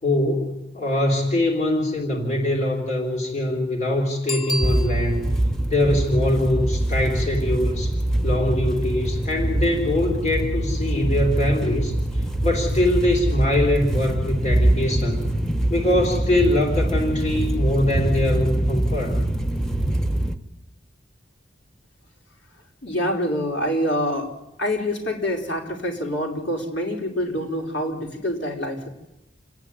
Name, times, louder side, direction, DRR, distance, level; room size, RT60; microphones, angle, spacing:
voice 1, 0.0-5.3 5.7-7.9 8.2-12.0 12.4-15.3 15.7-19.2, left 1 dB, 40° left, 1 dB, 3.7 m, -23 dB
Bicycle bell, 4.2-5.4 10.9-11.0, left 1 dB, 25° left, 0.7 m, -31 dB
sound 1, 4.6-20.4, right 1 dB, 5° left, 1.0 m, -24 dB
voice 2, 22.8-24.3 24.6-28.9, equal, 75° left, 1 dB, 4.4 m, -26 dB
29.0 x 10.5 x 9.8 m, 0.89 s
head